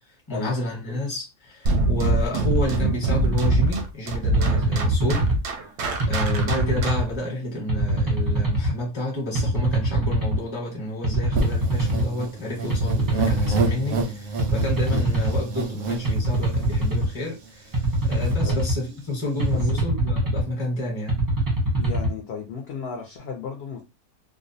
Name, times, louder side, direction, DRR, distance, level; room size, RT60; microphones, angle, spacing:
voice 1, 0.3-5.2 6.1-17.8 18.1-21.2, left 1 dB, 25° left, 0.8 m, -30 dB
sound 1, 1.7-7.2, right 2 dB, 65° right, 0.7 m, -23 dB
sound 2, 3.2-3.7 4.3-5.4 6.0-7.0 7.7-8.7 9.3-10.4 11.0-12.1 12.7-13.7 14.4-15.4 16.0-17.1 17.7-18.8 19.4-20.4 21.1-22.1, right 1 dB, 20° right, 0.6 m, -23 dB
sound 3, 11.3-16.9 17.4-17.5 17.7-18.3, right 3 dB, 85° right, 1.1 m, -29 dB
voice 2, 21.8-23.8, left 6 dB, 65° left, 0.6 m, -34 dB
2.6 x 2.0 x 2.6 m
omnidirectional pair, 1.5 m